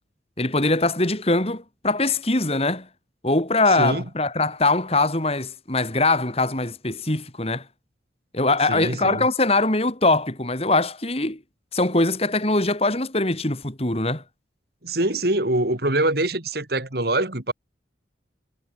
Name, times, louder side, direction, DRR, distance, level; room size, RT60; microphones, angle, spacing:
voice 1, 0.4-2.9 3.2-7.6 8.3-11.4 11.7-14.2, left 2 dB, 30° left, 3.0 m, -22 dB
voice 2, 8.7-9.3 14.8-17.5, right 1 dB, 55° right, 2.9 m, -24 dB
head